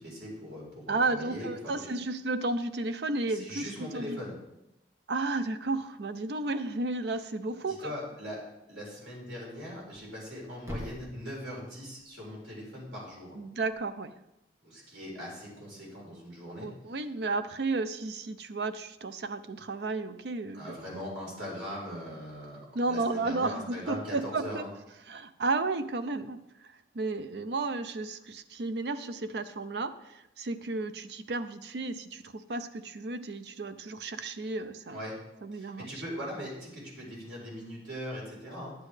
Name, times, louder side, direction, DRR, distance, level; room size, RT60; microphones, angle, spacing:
voice 1, 0.0-1.8 3.3-4.3 7.7-8.4 8.7-13.4 14.6-16.7 20.5-22.6 22.8-24.7 34.9-35.2 35.5-38.7, equal, 85° right, -4 dB, 4.1 m, -40 dB
voice 2, 0.9-4.2 5.1-7.9 13.4-14.1 16.6-20.7 22.7-24.6 25.1-26.4 26.9-35.0 35.4-35.9, right 3 dB, 65° right, 11 dB, 0.5 m, -33 dB
Thump thud, 9.8-13.9, left 1 dB, 15° right, 1.1 m, -47 dB
10.5 x 8.3 x 3.3 m, 0.90 s
head